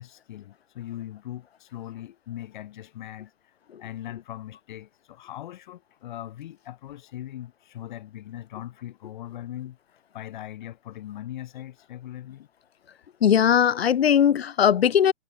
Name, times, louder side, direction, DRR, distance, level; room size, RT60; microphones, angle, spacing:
voice 1, 0.0-3.5 3.8-9.8 10.1-12.5, left 13 dB, 40° left, 3.3 m, -40 dB
voice 2, 13.2-15.1, left 9 dB, 60° left, 0.5 m, -19 dB
figure-of-eight pair, 120°, 35 cm